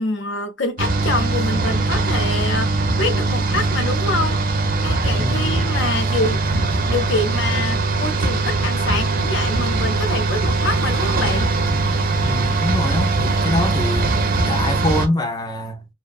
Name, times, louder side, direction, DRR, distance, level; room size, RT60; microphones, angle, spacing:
voice 1, 0.0-4.4 4.8-6.4 6.9-11.5, left 2 dB, 65° left, 0.6 m, -26 dB
sound 1, 0.8-15.1, right 3 dB, 45° right, 0.5 m, -20 dB
voice 2, 5.2-5.7 12.2-14.1 14.5-15.9, left 1 dB, 20° left, 0.3 m, -24 dB
2.6 x 2.1 x 2.3 m
head